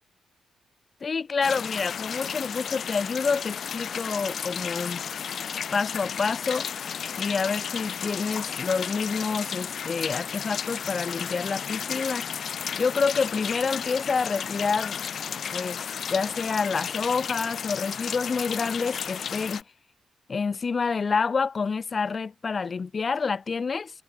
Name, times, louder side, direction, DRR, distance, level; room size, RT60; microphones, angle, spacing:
voice 1, 1.0-5.1 5.7-6.7 7.2-12.3 12.8-15.0 15.5-15.8 16.1-19.6 20.3-23.9, left 5 dB, 45° left, 2.6 m, -28 dB
sound 1, 1.4-19.6, left 7 dB, 60° left, 1.2 m, -33 dB
cardioid pair, 70°, 0 cm